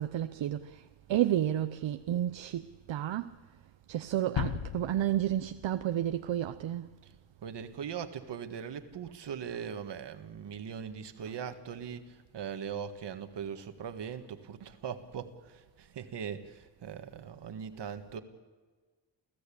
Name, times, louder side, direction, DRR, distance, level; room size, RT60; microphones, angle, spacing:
voice 1, 0.0-3.4 3.9-6.9 9.5-9.6 11.2-11.3, right 12 dB, 80° right, 0.8 m, -31 dB
sound 1, 4.4-6.4, left 9 dB, 65° left, 1.2 m, -37 dB
voice 2, 7.4-18.2, right 7 dB, 65° right, 1.7 m, -40 dB
29.5 x 15.5 x 8.6 m
wide cardioid pair, 175°, 44 cm